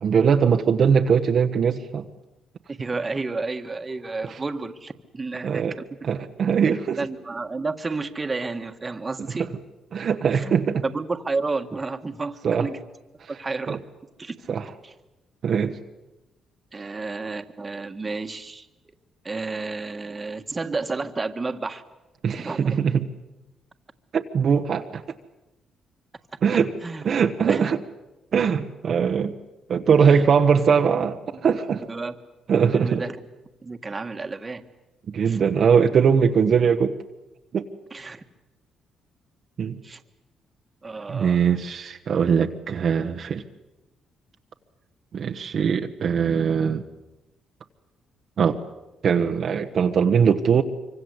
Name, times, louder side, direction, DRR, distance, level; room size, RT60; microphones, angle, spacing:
voice 1, 0.0-2.0 5.4-5.8 6.0-7.0 9.9-10.8 12.4-12.7 13.7-13.8 14.5-14.6 15.4-15.8 22.2-23.0 24.1-25.0 26.4-26.7 27.0-27.8 28.3-29.3 29.7-31.9 32.5-33.0 35.1-37.0 37.5-37.7 39.6-39.8 41.1-43.4 45.1-46.9 48.4-48.6 49.0-50.6, right 6 dB, 55° right, 5 dB, 1.2 m, -21 dB
voice 2, 2.7-5.8 7.0-9.5 10.3-10.5 10.8-12.8 13.3-13.8 14.2-14.3 14.8-14.9 16.7-18.7 19.2-21.8 22.4-22.8 26.8-27.1 27.4-27.7 30.0-30.2 31.9-32.2 32.7-33.2 33.6-34.6 35.3-35.4 37.9-38.2 39.8-40.0 40.8-41.4, right 3 dB, 25° right, 7 dB, 1.7 m, -31 dB
25.0 x 25.0 x 8.1 m, 1.0 s
cardioid pair, 90°, 0 cm